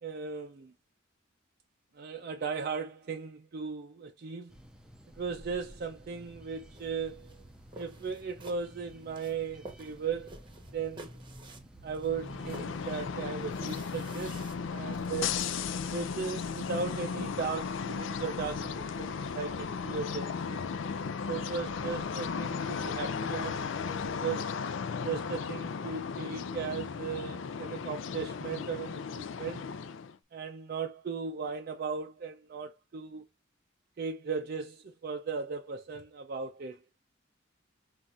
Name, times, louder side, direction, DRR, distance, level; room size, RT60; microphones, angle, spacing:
voice 1, 0.0-0.7 1.9-4.5 5.2-7.4 7.7-10.3 10.7-11.2 11.8-15.4 15.9-20.7 21.3-24.5 25.0-29.6 30.3-33.3 34.0-36.8, right 5 dB, 50° right, 0.4 m, -37 dB
sound 1, 4.5-24.2, equal, 5° right, 0.6 m, -51 dB
sound 2, 6.7-16.8, right 2 dB, 25° right, 0.9 m, -52 dB
sound 3, 12.1-30.2, left 6 dB, 65° left, 0.4 m, -36 dB
5.7 x 2.5 x 2.4 m
head